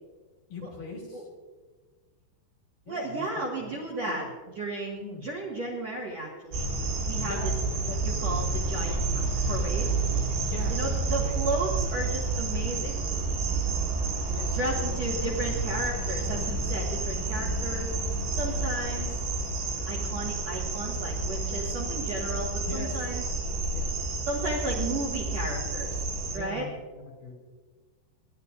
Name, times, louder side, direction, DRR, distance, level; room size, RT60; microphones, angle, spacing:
voice 1, 0.5-1.3 2.8-3.2 3.6-3.8 4.0-4.3 5.0-5.3 7.2-7.6 10.4-11.4 14.3-15.5 18.4-18.7 22.6-23.1 23.7-24.1 26.3-27.3, left 3 dB, 50° left, -2 dB, 4.0 m, -42 dB
voice 2, 2.9-4.3 4.5-6.7 7.1-7.5 7.9-9.2 9.5-9.9 10.7-13.0 14.5-18.0 18.3-19.2 19.9-23.2 24.3-26.0 26.3-26.7, right 2 dB, 50° right, -3 dB, 2.1 m, -34 dB
Crickets in Suburban Back Yard, 6.5-26.4, right 3 dB, 80° right, 6.9 m, -30 dB
26.0 x 12.0 x 2.6 m, 1.3 s
omnidirectional pair, 5.3 m